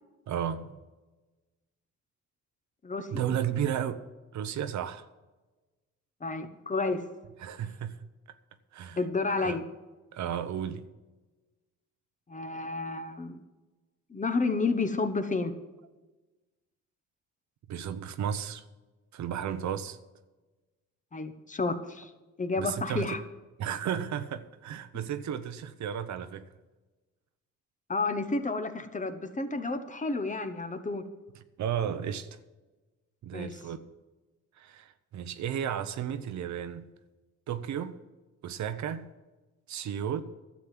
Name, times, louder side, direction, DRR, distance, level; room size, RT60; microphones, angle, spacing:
voice 1, 0.3-0.8 3.1-4.0 4.3-5.1 7.4-8.0 8.7-9.0 9.4-9.6 10.1-10.8 17.7-18.6 19.1-20.0 22.6-23.2 23.6-26.4 31.6-32.3 33.2-33.8 34.6-36.9 37.5-38.0 38.4-39.1 39.7-40.2, right 9 dB, 65° right, 0.9 m, -33 dB
voice 2, 2.8-3.2 6.2-7.0 9.0-9.6 12.3-13.4 14.1-15.5 21.1-22.1 22.4-23.2 27.9-31.0 33.3-33.5, left 3 dB, 25° left, 1.1 m, -31 dB
12.0 x 7.5 x 7.6 m
cardioid pair, 90°, 30 cm